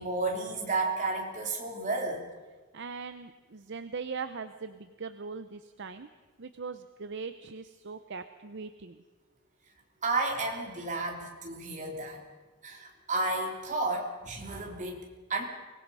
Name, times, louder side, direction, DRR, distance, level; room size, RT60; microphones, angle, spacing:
voice 1, 0.0-2.3 10.0-12.2 12.6-15.4, right 2 dB, 35° right, 0 dB, 3.3 m, -32 dB
voice 2, 2.7-6.1 6.4-9.0, right 5 dB, 55° right, 10 dB, 0.7 m, -40 dB
24.0 x 19.5 x 5.6 m, 1.3 s
head